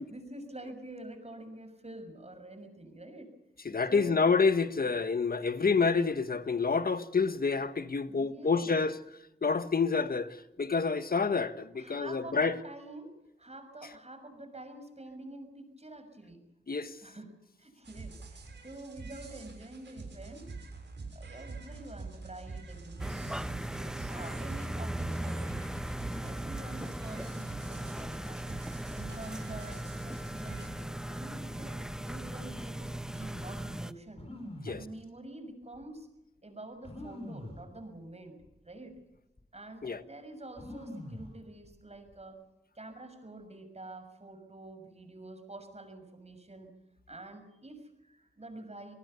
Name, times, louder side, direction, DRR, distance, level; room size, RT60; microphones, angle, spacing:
voice 1, 0.0-3.3 3.9-4.2 8.1-8.8 11.7-16.4 17.0-17.3 17.6-20.5 21.1-25.7 26.2-28.5 28.9-34.2 34.7-36.1 36.4-38.4 38.6-39.0 39.5-42.4 42.7-46.7 47.1-48.9, right 2 dB, 35° right, 6.4 m, -47 dB
voice 2, 3.6-9.0 9.4-12.6 16.7-17.0 34.6-34.8 39.8-40.0, left 4 dB, 55° left, 1.5 m, -28 dB
sound 1, 17.8-30.7, right 3 dB, 75° right, 6.9 m, -45 dB
sound 2, 23.0-33.9, right 1 dB, 5° right, 1.1 m, -38 dB
sound 3, 34.1-34.9 35.7-35.8 36.8-37.6 38.4-38.6 38.9-39.4 40.6-41.3 41.6-42.2, left 1 dB, 35° left, 5.7 m, -44 dB
27.5 x 19.0 x 7.0 m
cardioid pair, 50°, 19 cm